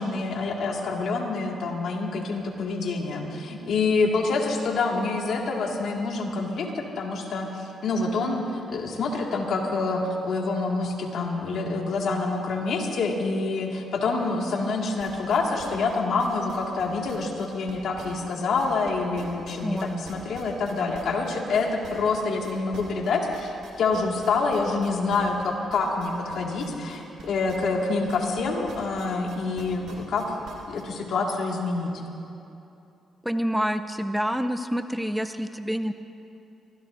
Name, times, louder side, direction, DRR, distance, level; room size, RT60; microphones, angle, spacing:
voice 1, 0.0-23.5 23.8-30.3 30.7-31.9, left 3 dB, 70° left, 0 dB, 1.9 m, -27 dB
sound 1, 15.0-18.9 19.2-28.4 28.7-30.8, right 5 dB, 80° right, 2.8 m, -46 dB
voice 2, 19.6-20.0 33.2-35.9, equal, 5° right, 10 dB, 0.5 m, -27 dB
24.0 x 16.0 x 2.6 m, 2.8 s
supercardioid pair, 65°, 0 cm